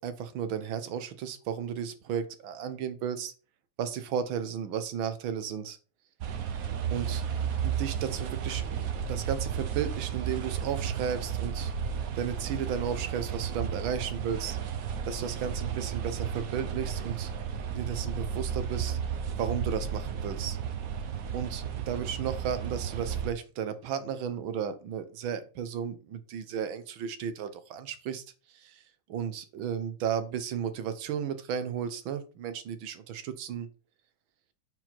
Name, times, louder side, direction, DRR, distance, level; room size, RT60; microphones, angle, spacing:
voice 1, 0.0-3.3 3.8-5.8 6.9-7.2 7.6-11.7 12.2-14.6 15.1-17.3 17.7-19.0 19.4-20.6 21.3-28.2 28.5-28.8 29.1-33.7, right 8 dB, 85° right, 10 dB, 1.7 m, -34 dB
sound 1, 6.2-23.3, right 7 dB, 60° right, 1.0 m, -33 dB
5.8 x 4.8 x 5.7 m, 0.35 s
omnidirectional pair, 2.1 m